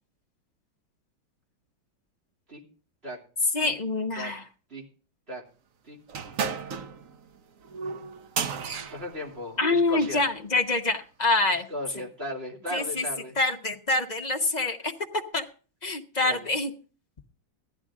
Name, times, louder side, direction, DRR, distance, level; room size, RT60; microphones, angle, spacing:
voice 1, 3.5-4.4 9.6-11.7 12.7-13.0 13.4-14.9 15.3-15.4 15.8-16.7, left 2 dB, 35° left, 2 dB, 0.7 m, -26 dB
sound 1, 6.1-10.2, right 6 dB, 55° right, 1.0 m, -34 dB
voice 2, 8.9-10.2 11.7-13.4 16.2-16.5, left 1 dB, 30° right, -2 dB, 3.0 m, -36 dB
15.0 x 11.5 x 3.7 m, 0.38 s
omnidirectional pair, 2.1 m